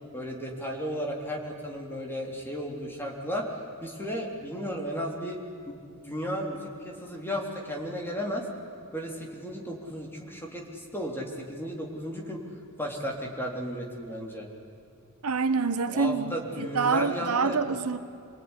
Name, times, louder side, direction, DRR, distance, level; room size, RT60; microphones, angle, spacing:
voice 1, 0.1-5.4 5.7-8.5 8.9-12.4 12.8-14.5 15.9-17.6, equal, 10° left, 0 dB, 3.6 m, -34 dB
voice 2, 15.2-18.0, right 4 dB, 80° right, 11 dB, 1.1 m, -26 dB
26.5 x 21.0 x 10.0 m, 2.6 s
head